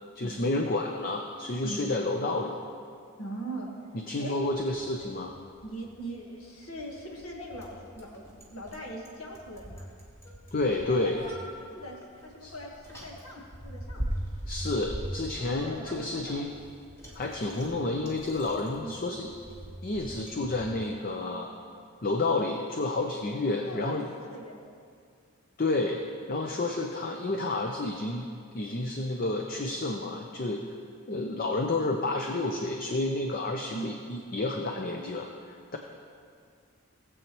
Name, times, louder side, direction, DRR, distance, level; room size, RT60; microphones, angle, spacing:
voice 1, 0.2-2.5 3.9-5.3 10.5-11.2 12.4-12.5 14.5-16.5 17.1-19.3 19.8-21.5 22.0-24.0 25.6-26.0 26.3-28.3 28.5-30.6 31.1-35.8, left 2 dB, 40° left, 3 dB, 0.6 m, -30 dB
voice 2, 3.2-3.7 4.2-4.4 5.6-9.9 10.9-11.3 11.6-14.1 15.4-16.4 18.8-19.0 23.6-24.6 28.8-29.0 30.4-30.7 33.7-33.9, right 1 dB, 80° left, 0 dB, 1.5 m, -41 dB
Bicycle, 4.7-20.7, equal, 15° left, 1.4 m, -42 dB
18.0 x 7.7 x 3.1 m, 2.2 s
head